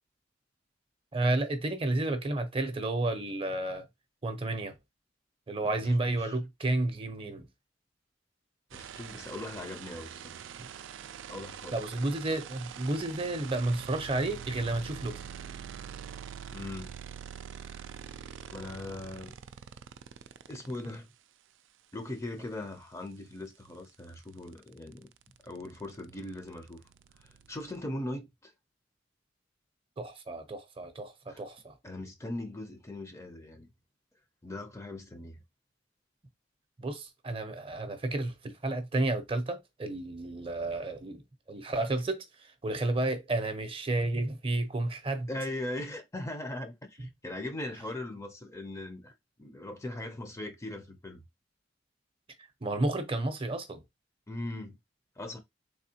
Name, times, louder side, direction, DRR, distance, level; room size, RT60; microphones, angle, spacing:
voice 1, 1.1-3.9 4.2-4.8 5.5-7.5 11.7-15.3 30.0-31.7 36.8-41.2 41.5-45.3 52.6-53.8, right 2 dB, 30° right, 0.6 m, -31 dB
voice 2, 5.6-6.4 8.7-10.5 11.3-11.8 16.5-17.0 18.5-19.3 20.5-21.1 21.9-25.1 25.4-26.8 27.2-28.5 31.3-31.4 31.8-33.7 34.4-35.4 45.3-49.1 49.4-51.2 54.3-54.8 55.2-55.4, left 1 dB, 15° left, 0.5 m, -40 dB
sound 1, 8.7-21.0 23.1-23.2 23.4-27.8, right 8 dB, 85° right, 0.3 m, -45 dB
3.4 x 3.2 x 2.8 m
head